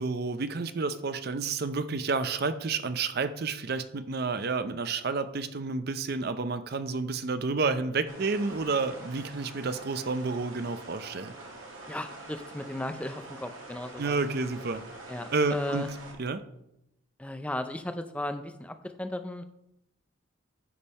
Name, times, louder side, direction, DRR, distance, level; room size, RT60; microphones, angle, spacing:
voice 1, 0.0-11.3 14.0-14.8 15.3-15.8 16.2-16.4, right 4 dB, 45° right, 11 dB, 0.5 m, -30 dB
sound 1, 8.1-16.1, right 2 dB, 70° right, 2.0 m, -45 dB
voice 2, 11.9-14.2 15.1-15.9 17.2-19.4, left 1 dB, 5° left, 8 dB, 0.4 m, -36 dB
9.7 x 5.3 x 4.2 m, 0.83 s
head